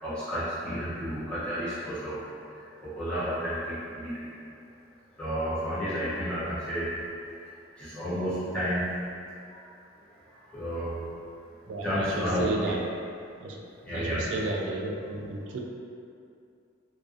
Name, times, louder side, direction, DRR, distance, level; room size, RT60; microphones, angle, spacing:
voice 1, 0.0-2.2 2.5-4.3 5.2-7.0 7.8-9.0 9.5-9.7 10.3-11.0 11.8-12.7 13.8-14.5, equal, 5° left, -12 dB, 0.4 m, -31 dB
voice 2, 11.7-12.8 13.4-13.6 13.9-15.6, right 2 dB, 70° right, 1 dB, 0.3 m, -32 dB
2.4 x 2.3 x 2.4 m, 2.5 s
head